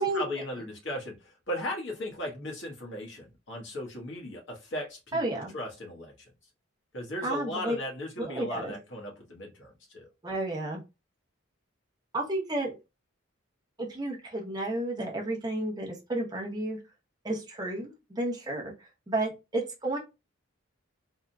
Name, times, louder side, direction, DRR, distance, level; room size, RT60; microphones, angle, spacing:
voice 1, 0.0-5.2 5.5-6.1 6.9-10.1, left 1 dB, 65° left, -1 dB, 1.3 m, -37 dB
voice 2, 5.1-5.5 7.2-7.8 8.2-8.8 10.2-10.8 12.1-12.7 13.8-16.8 17.2-18.7 19.1-20.0, right 2 dB, 20° right, -1 dB, 0.7 m, -31 dB
3.5 x 2.8 x 2.2 m, 0.26 s
head